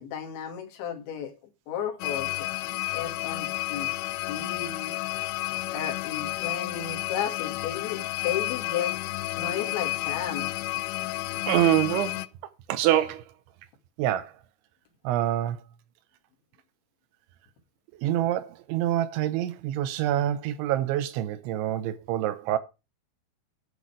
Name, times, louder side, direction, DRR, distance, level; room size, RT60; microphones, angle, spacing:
voice 1, 0.0-1.3 1.7-2.5 2.9-3.9 4.3-4.9 5.7-9.0 9.4-10.4 11.3-11.5, left 9 dB, 70° left, 4.3 m, -33 dB
sound 1, 2.0-12.3, left 20 dB, 90° left, 3.2 m, -31 dB
voice 2, 11.5-12.3 12.7-13.2 14.0-14.3 15.0-15.6 18.0-22.6, right 12 dB, 80° right, 3.0 m, -26 dB
11.0 x 6.8 x 4.8 m
omnidirectional pair, 5.5 m